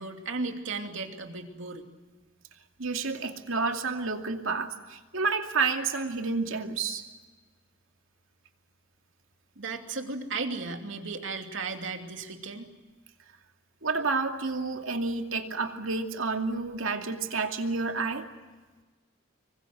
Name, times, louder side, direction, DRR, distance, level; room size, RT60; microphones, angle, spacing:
voice 1, 0.0-1.9 9.6-12.7, right 3 dB, 70° right, 4 dB, 2.8 m, -35 dB
voice 2, 2.8-7.1 13.8-18.3, right 4 dB, 85° right, 4 dB, 2.5 m, -30 dB
26.5 x 23.0 x 7.8 m, 1.3 s
head